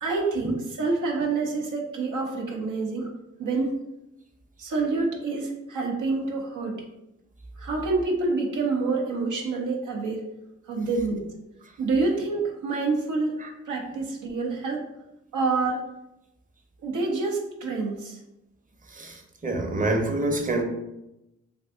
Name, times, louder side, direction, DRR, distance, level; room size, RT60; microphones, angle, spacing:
voice 1, 0.0-3.1 3.4-3.7 4.6-6.8 7.6-10.3 10.7-11.2 11.8-13.4 13.7-14.9 15.3-15.8 16.8-18.2, right 3 dB, 90° right, 0 dB, 0.5 m, -27 dB
voice 2, 18.9-20.6, right 2 dB, 25° right, 3 dB, 0.7 m, -27 dB
2.5 x 2.5 x 3.4 m, 0.90 s
cardioid pair, 40°, 30 cm